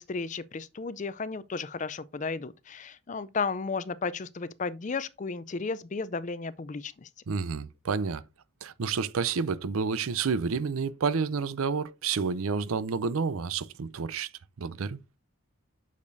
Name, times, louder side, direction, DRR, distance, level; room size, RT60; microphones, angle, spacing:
voice 1, 0.0-7.1, left 4 dB, 35° left, 0.4 m, -34 dB
voice 2, 7.3-8.2 8.6-14.3 14.6-15.0, right 5 dB, 75° right, 0.5 m, -29 dB
8.4 x 6.5 x 2.6 m
head